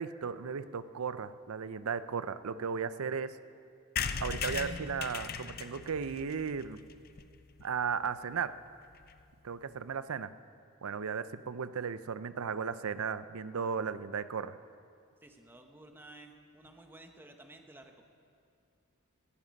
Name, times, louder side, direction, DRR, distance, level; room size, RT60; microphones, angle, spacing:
voice 1, 0.0-3.4 4.2-6.8 7.6-8.6 9.4-10.3 10.8-14.6, right 6 dB, 85° right, 14 dB, 0.5 m, -35 dB
sound 1, 4.0-7.6 8.1-8.2 8.4-8.5 8.7-8.8 9.0-9.2, left 6 dB, 45° left, 0.5 m, -38 dB
voice 2, 15.2-18.0, right 2 dB, 10° right, 4 dB, 1.0 m, -53 dB
17.5 x 11.0 x 5.3 m, 2.4 s
head